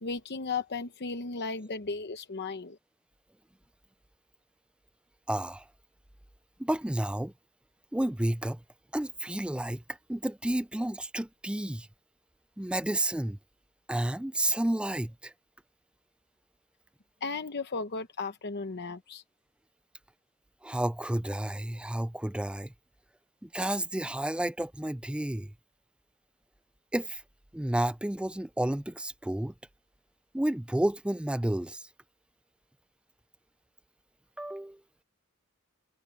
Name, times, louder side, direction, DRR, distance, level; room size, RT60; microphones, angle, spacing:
voice 1, 0.0-2.8 17.2-19.2, left 4 dB, 50° left, 0.8 m, -35 dB
voice 2, 5.3-5.6 6.6-7.3 7.9-8.6 8.9-9.8 10.1-11.9 12.6-13.4 13.9-15.3 20.6-22.7 23.4-25.5 26.9-27.2 27.5-29.5 30.3-31.9 34.4-34.8, right 1 dB, 5° right, 0.3 m, -31 dB
head